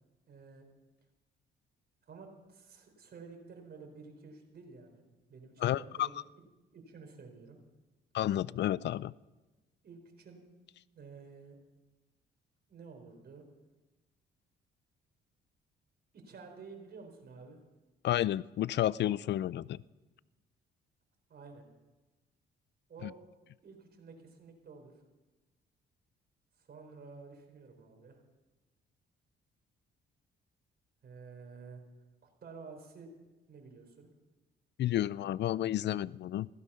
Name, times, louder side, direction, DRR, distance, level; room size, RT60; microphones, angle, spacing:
voice 1, 0.3-0.7 2.1-5.0 5.3-6.1 6.7-7.6 9.8-10.4 10.9-11.6 12.7-13.4 16.1-17.6 21.3-21.7 22.9-23.2 23.6-24.9 26.6-28.2 31.0-31.8 32.4-33.1 33.5-34.1, right 4 dB, 55° right, 3 dB, 4.1 m, -51 dB
voice 2, 5.6-6.1 8.1-9.1 18.0-19.8 34.8-36.5, left 12 dB, 60° left, 21 dB, 0.4 m, -31 dB
16.5 x 15.0 x 5.7 m, 1.1 s
cardioid pair, 90°, 20 cm